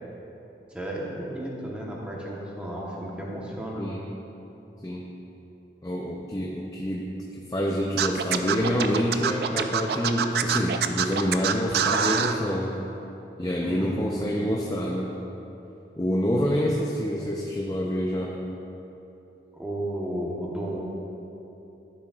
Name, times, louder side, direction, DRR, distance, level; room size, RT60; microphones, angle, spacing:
voice 1, 0.7-4.0 13.6-14.2 19.5-20.8, right 1 dB, 5° right, -4 dB, 1.0 m, -33 dB
voice 2, 5.8-7.0 7.5-12.8 13.4-15.1 16.0-18.4, equal, 20° left, -2 dB, 0.5 m, -27 dB
Scratching (performance technique), 8.0-12.3, right 7 dB, 65° right, 0.4 m, -25 dB
12.5 x 7.2 x 2.4 m, 3.0 s
head